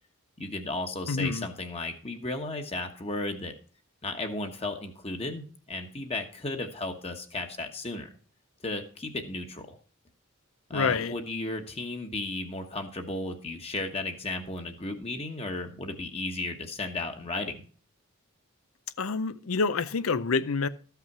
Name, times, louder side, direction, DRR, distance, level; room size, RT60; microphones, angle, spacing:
voice 1, 0.4-3.5 4.0-8.1 8.6-9.8 10.7-17.6, left 2 dB, 30° left, 1.2 m, -34 dB
voice 2, 1.1-1.5 10.7-11.1 19.0-20.7, left 4 dB, 80° left, 0.6 m, -27 dB
13.5 x 5.8 x 6.0 m
head